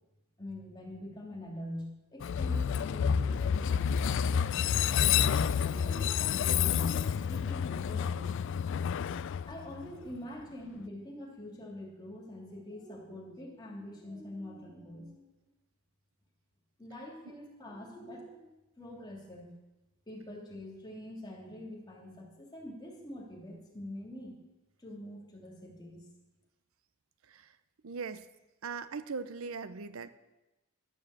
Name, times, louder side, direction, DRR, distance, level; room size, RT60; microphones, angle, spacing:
voice 1, 0.4-8.6 9.5-15.3 16.8-19.5 20.1-24.4 24.8-26.0, left 1 dB, 20° left, -1 dB, 2.7 m, -45 dB
Train, 2.2-10.2, left 7 dB, 60° left, 0.3 m, -29 dB
voice 2, 27.8-28.3 28.6-30.1, right 5 dB, 70° right, 13 dB, 0.6 m, -40 dB
12.0 x 7.2 x 8.1 m, 1.0 s
head